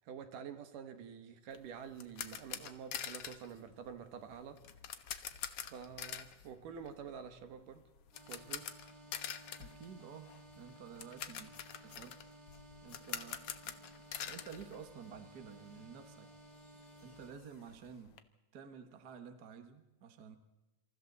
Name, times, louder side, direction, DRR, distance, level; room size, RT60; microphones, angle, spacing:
voice 1, 0.1-4.6 5.7-7.8 8.3-8.7, right 7 dB, 65° right, 2.9 m, -48 dB
sound 1, 1.5-15.5 15.7-15.9 16.3-16.4 16.6-18.2, left 9 dB, 65° left, 1.5 m, -46 dB
sound 2, 8.1-17.3, right 1 dB, 10° right, 5.9 m, -57 dB
voice 2, 9.6-12.2 12.8-13.9 14.2-16.3 17.0-18.2 18.5-20.4, right 7 dB, 45° right, 1.3 m, -52 dB
27.5 x 27.0 x 4.1 m
omnidirectional pair, 4.2 m